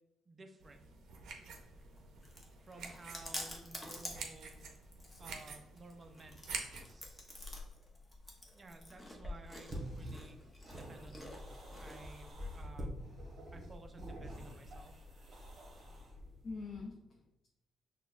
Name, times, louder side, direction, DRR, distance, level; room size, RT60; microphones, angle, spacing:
voice 1, 0.3-0.9 2.6-4.6 5.2-7.3 8.5-10.4 10.7-12.9 13.5-15.1, right 2 dB, 30° right, 5 dB, 0.5 m, -55 dB
sound 1, 0.6-6.9, right 5 dB, 75° right, 0.6 m, -48 dB
Chewing mastication, 1.6-12.3, left 1 dB, 15° left, 0.8 m, -49 dB
sound 2, 9.7-16.9, equal, 50° right, 1.2 m, -47 dB
voice 2, 16.4-17.5, left 4 dB, 50° left, 0 dB, 0.5 m, -47 dB
6.1 x 2.3 x 2.4 m, 0.88 s
cardioid pair, 90°, 0 cm